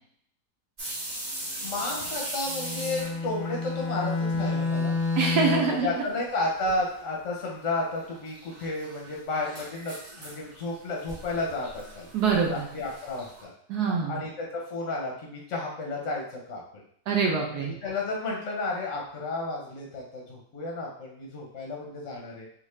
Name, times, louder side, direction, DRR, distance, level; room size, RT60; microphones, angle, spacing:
sound 1, 0.8-4.6 4.8-5.5 5.9-6.0 6.6-7.0 8.0-13.4, right 1 dB, 35° right, 1.0 m, -40 dB
voice 1, 1.6-5.0 5.7-12.1 12.5-13.5 14.1-16.6 17.5-22.5, left 2 dB, 55° left, -2 dB, 0.9 m, -32 dB
Bowed string instrument, 2.4-5.8, left 3 dB, 85° left, 1.3 m, -29 dB
voice 2, 5.2-5.9 12.1-12.7 13.7-14.2 17.1-17.7, right 5 dB, 70° right, 0 dB, 1.1 m, -25 dB
3.5 x 2.4 x 3.1 m, 0.66 s
omnidirectional pair, 1.9 m